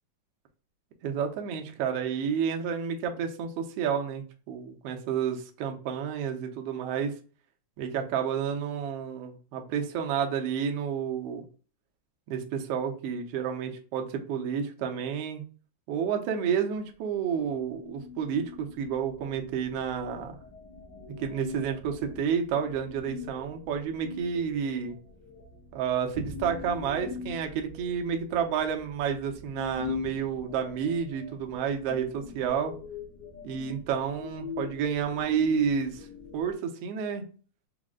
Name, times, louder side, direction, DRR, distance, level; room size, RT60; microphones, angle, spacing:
voice 1, 1.0-7.1 7.8-11.4 12.3-15.4 15.9-20.4 21.2-25.0 25.7-32.7 33.4-36.1 36.3-37.2, right 7 dB, 80° right, 4 dB, 1.4 m, -30 dB
sound 1, 17.4-36.5, left 5 dB, 85° left, 0.9 m, -43 dB
4.9 x 2.1 x 3.6 m, 0.38 s
omnidirectional pair, 3.6 m